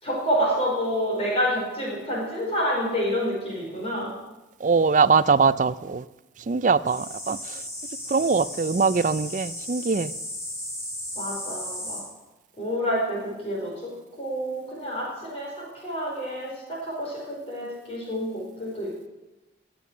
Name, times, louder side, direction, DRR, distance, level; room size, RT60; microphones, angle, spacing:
voice 1, 0.0-4.1 11.2-12.0 12.6-13.9 14.2-19.1, equal, 30° left, -4 dB, 4.6 m, -28 dB
voice 2, 4.6-6.0 6.5-7.4 8.1-10.1, right 5 dB, 40° right, 16 dB, 0.4 m, -22 dB
sound 1, 6.9-12.0, left 1 dB, 15° left, 3.3 m, -35 dB
20.5 x 7.9 x 6.2 m, 1.1 s
head